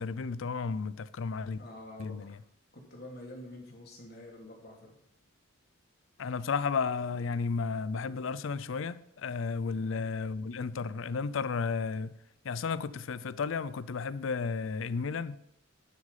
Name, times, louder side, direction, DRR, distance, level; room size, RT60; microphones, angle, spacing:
voice 1, 0.0-1.6 2.0-2.4 6.2-12.1 12.4-15.4, left 5 dB, 75° left, 0.5 m, -33 dB
voice 2, 1.5-2.3 2.7-4.9 9.8-10.1, left 1 dB, 50° left, 2.5 m, -47 dB
11.0 x 6.4 x 5.5 m
head